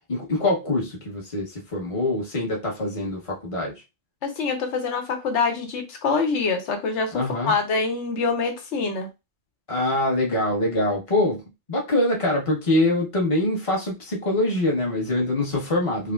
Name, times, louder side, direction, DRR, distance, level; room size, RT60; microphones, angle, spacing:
voice 1, 0.1-3.7 7.1-7.5 9.7-11.4 11.7-16.1, left 1 dB, 30° left, 1.0 m, -24 dB
voice 2, 4.2-9.1, left 4 dB, 85° left, 1.0 m, -25 dB
4.7 x 2.1 x 2.3 m
omnidirectional pair, 1.2 m